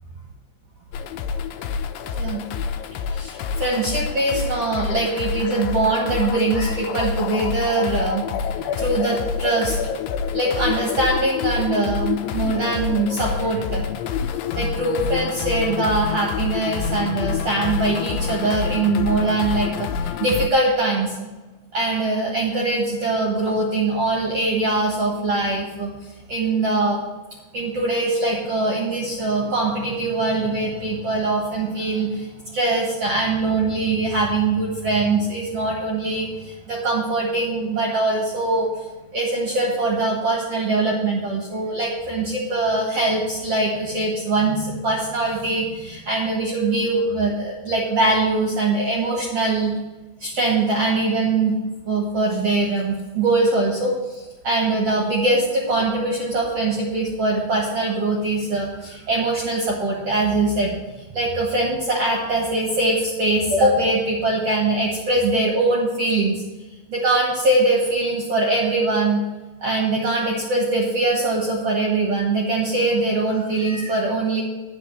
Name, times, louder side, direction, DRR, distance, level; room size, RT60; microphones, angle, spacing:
sound 1, 0.9-20.5, left 7 dB, 80° left, 2.4 m, -27 dB
voice 1, 2.0-2.4 3.1-9.9 10.3-14.0 14.6-21.3 21.7-25.9 26.3-27.0 27.5-38.7 39.1-49.7 50.2-51.6 51.9-60.8 61.1-66.4 66.9-69.2 69.6-74.4, right 2 dB, 60° right, -2 dB, 1.7 m, -22 dB
9.7 x 5.2 x 6.9 m, 1.2 s
omnidirectional pair, 4.7 m